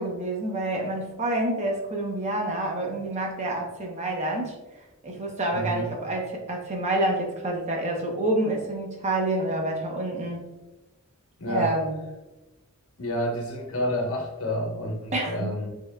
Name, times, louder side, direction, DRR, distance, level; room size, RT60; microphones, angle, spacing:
voice 1, 0.0-4.6 5.0-10.4 11.4-11.9 15.1-15.6, right 1 dB, 30° right, 1 dB, 0.8 m, -28 dB
voice 2, 5.5-5.9 11.4-11.7 13.0-15.7, equal, 70° left, 1 dB, 1.0 m, -29 dB
5.7 x 3.7 x 2.2 m, 1.1 s
head